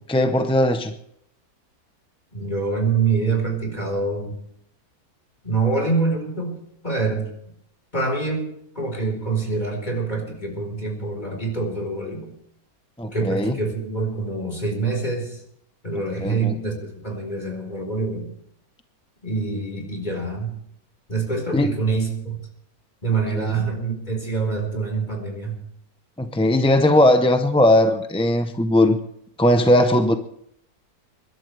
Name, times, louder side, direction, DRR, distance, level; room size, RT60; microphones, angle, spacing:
voice 1, 0.1-0.9 13.0-13.5 16.2-16.6 21.5-21.7 23.3-23.5 26.2-29.0 29.4-30.2, left 1 dB, 5° left, 7 dB, 0.5 m, -18 dB
voice 2, 2.3-4.4 5.4-6.6 6.8-7.3 7.9-12.3 13.1-15.4 15.8-18.3 19.2-20.5 21.1-22.4 23.0-25.6, right 4 dB, 30° left, 1 dB, 4.5 m, -25 dB
29.5 x 12.0 x 3.3 m, 0.73 s
omnidirectional pair, 1.6 m